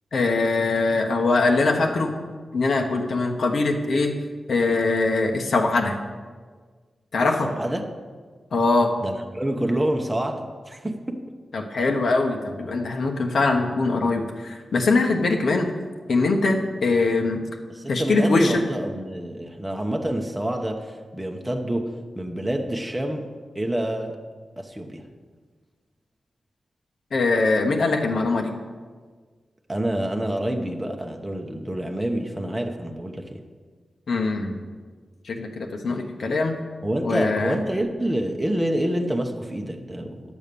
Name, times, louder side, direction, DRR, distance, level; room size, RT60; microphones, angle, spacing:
voice 1, 0.1-2.1 2.5-4.2 4.5-6.0 7.1-7.5 8.5-9.0 11.5-15.7 16.1-17.4 17.9-18.6 27.1-28.5 34.1-34.6 35.2-36.6 37.0-37.6, left 3 dB, 65° left, 2 dB, 1.2 m, -22 dB
voice 2, 7.4-7.8 9.0-11.2 17.7-24.2 24.6-25.1 29.7-33.4 36.8-40.2, right 1 dB, 10° right, 2 dB, 0.9 m, -27 dB
11.0 x 7.2 x 6.8 m, 1.5 s
wide cardioid pair, 125°, 0 cm